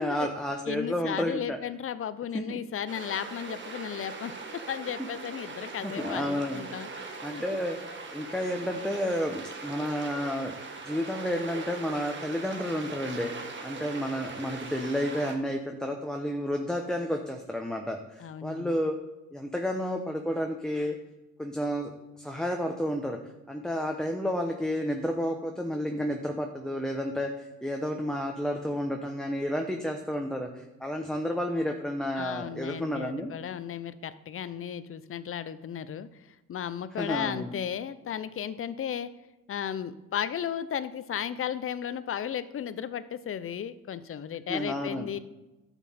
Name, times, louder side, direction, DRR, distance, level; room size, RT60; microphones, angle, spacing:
voice 1, 0.0-1.6 2.5-2.6 5.8-6.6 7.2-7.8 8.1-10.5 10.8-19.0 19.3-21.0 21.4-21.9 22.2-23.2 23.5-33.3 37.0-37.5 44.5-45.1, equal, ahead, 3 dB, 0.9 m, -31 dB
voice 2, 0.7-7.4 18.2-18.8 32.2-36.2 36.5-39.1 39.5-45.2, left 9 dB, 45° left, 14 dB, 0.6 m, -35 dB
sound 1, 2.9-15.3, right 3 dB, 40° right, 1.7 m, -41 dB
11.0 x 7.1 x 4.3 m, 1.0 s
cardioid pair, 90°, 30 cm